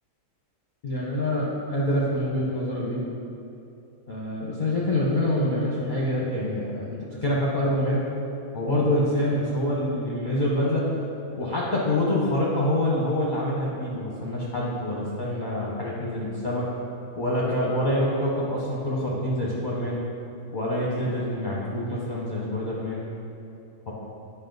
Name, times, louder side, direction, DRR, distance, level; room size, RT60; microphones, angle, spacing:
voice 1, 0.8-3.0 4.1-8.0 8.5-10.8 11.4-16.6 17.1-20.0 20.5-23.0 23.9-24.0, left 1 dB, 40° left, -6 dB, 0.9 m, -26 dB
9.2 x 5.8 x 3.9 m, 2.7 s
omnidirectional pair, 1.6 m